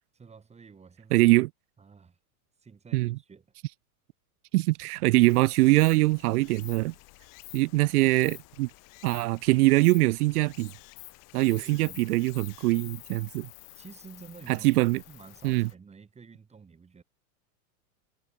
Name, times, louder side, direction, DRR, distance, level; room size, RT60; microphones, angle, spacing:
voice 1, 0.1-1.3 1.8-2.2 2.6-3.4 11.5-12.0 13.7-14.7 15.1-17.0, right 5 dB, 15° right, 3.1 m, -50 dB
voice 2, 1.1-1.5 2.9-3.2 4.5-6.9 7.5-8.7 9.0-10.7 11.3-13.5 14.5-15.0 15.4-15.7, right 20 dB, 80° right, 0.8 m, -23 dB
Stream, 5.2-15.7, left 25 dB, 45° left, 1.8 m, -49 dB
supercardioid pair, 140°, 44 cm